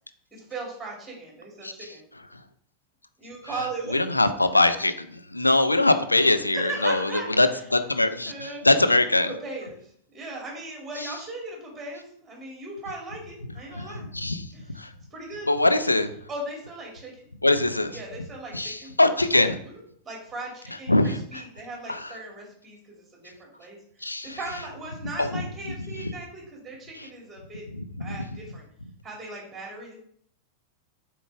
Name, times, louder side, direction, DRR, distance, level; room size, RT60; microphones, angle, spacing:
voice 1, 0.3-2.0 3.2-4.0 6.5-7.6 8.2-8.7 9.3-14.1 14.5-14.8 15.1-15.5 16.3-17.2 17.9-18.9 19.3-23.8 24.2-27.7 28.0-28.6 29.0-30.0, right 2 dB, 10° right, -2 dB, 2.7 m, -38 dB
voice 2, 3.9-5.1 5.3-7.1 7.4-9.3 13.7-14.5 14.8-14.9 15.5-16.1 17.4-18.0 18.5-19.5 20.9-21.4 21.9-22.1 24.0-24.4 25.2-25.4 28.1-28.2, left 2 dB, 85° left, 10 dB, 0.5 m, -22 dB
7.7 x 4.7 x 3.5 m, 0.64 s
figure-of-eight pair, 90°, 0 cm